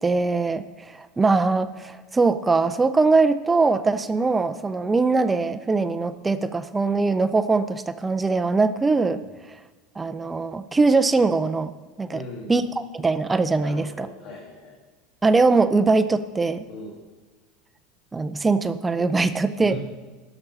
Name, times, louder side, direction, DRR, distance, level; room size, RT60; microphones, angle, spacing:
voice 1, 0.0-9.2 10.0-11.7 12.0-12.2 12.5-12.6 12.9-14.1 15.2-16.6 18.1-19.8, right 3 dB, 15° right, 12 dB, 0.5 m, -21 dB
voice 2, 12.1-12.6 13.6-14.8 16.7-17.0 19.6-19.8, left 2 dB, 60° left, -3 dB, 2.0 m, -39 dB
12.0 x 6.0 x 5.5 m, 1.3 s
supercardioid pair, 115°, 0 cm